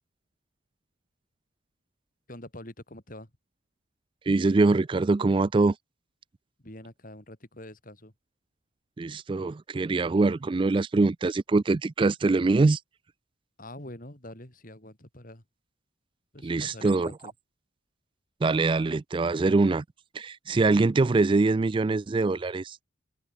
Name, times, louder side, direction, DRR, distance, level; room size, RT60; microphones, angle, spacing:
voice 1, 2.3-3.3 6.6-8.1 13.6-15.4 16.3-17.3, left 1 dB, 40° left, 3.6 m, -45 dB
voice 2, 4.3-5.8 9.0-12.8 16.4-17.1 18.4-19.8 20.1-22.8, right 3 dB, 25° right, 0.3 m, -23 dB
head